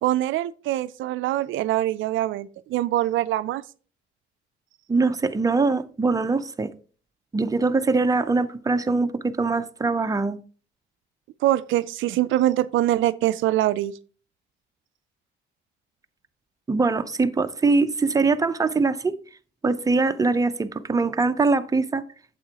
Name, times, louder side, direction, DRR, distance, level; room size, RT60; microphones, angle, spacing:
voice 1, 0.0-3.6 11.4-13.9, right 14 dB, 80° right, 0.4 m, -23 dB
voice 2, 4.9-6.7 7.3-10.4 16.7-19.2 19.6-22.0, right 3 dB, 15° right, 0.6 m, -22 dB
8.6 x 7.5 x 2.9 m
cardioid pair, 90°, 20 cm